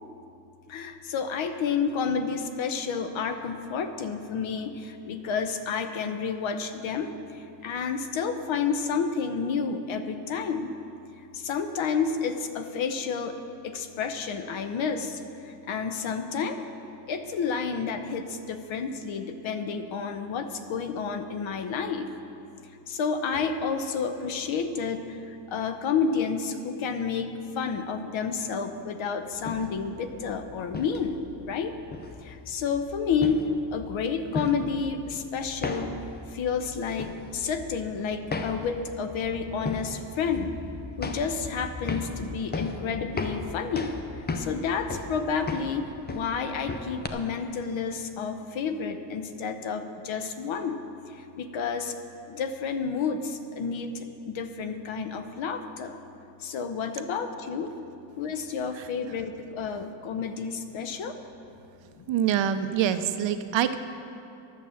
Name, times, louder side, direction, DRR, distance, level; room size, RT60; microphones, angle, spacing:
voice 1, 0.7-10.7 11.3-13.4 13.6-16.6 17.1-22.1 22.9-31.7 32.2-33.5 33.7-36.0 36.3-40.6 41.0-50.8 51.1-51.9 52.3-56.0 56.4-57.7 58.2-61.2 62.0-62.1, left 5 dB, 85° left, 8 dB, 0.9 m, -30 dB
sound 1, 29.3-47.1, left 3 dB, 20° left, 0.6 m, -37 dB
voice 2, 62.1-63.8, right 9 dB, 70° right, 10 dB, 0.7 m, -25 dB
11.5 x 7.4 x 7.1 m, 2.7 s
cardioid pair, 150°, 46 cm